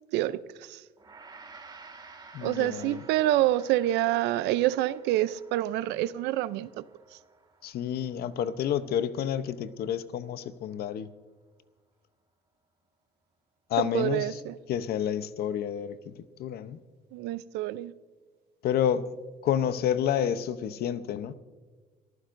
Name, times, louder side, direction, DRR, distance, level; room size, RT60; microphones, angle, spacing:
voice 1, 0.1-0.8 2.4-6.7 13.8-14.5 17.1-17.9, right 14 dB, 90° right, 0.5 m, -27 dB
Gong, 1.0-10.4, right 4 dB, 25° right, 2.1 m, -53 dB
voice 2, 2.3-3.0 7.6-11.1 13.7-14.4 14.7-16.8 18.6-19.2 19.4-21.3, left 9 dB, 70° left, 0.8 m, -29 dB
29.0 x 14.5 x 2.6 m
cardioid pair, 110°, 17 cm